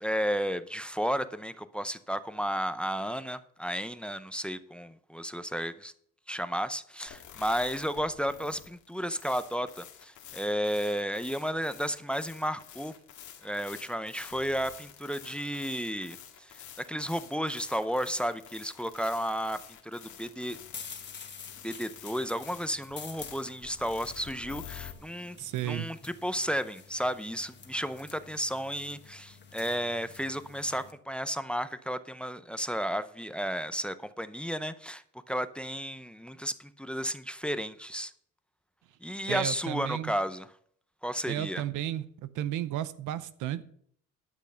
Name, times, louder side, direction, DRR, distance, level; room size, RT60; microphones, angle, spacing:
voice 1, 0.0-5.9 6.3-12.9 13.4-20.6 21.6-25.4 25.6-38.1 39.0-40.5 41.0-41.6, equal, 5° left, 13 dB, 0.6 m, -33 dB
sound 1, 7.1-24.9, left 9 dB, 80° left, 1.8 m, -49 dB
sound 2, 20.5-30.9, left 6 dB, 35° left, 1.4 m, -49 dB
voice 2, 25.4-25.9 39.3-40.2 41.3-43.6, right 12 dB, 90° right, 15 dB, 0.7 m, -33 dB
12.0 x 6.2 x 5.6 m, 0.63 s
cardioid pair, 100°, 30 cm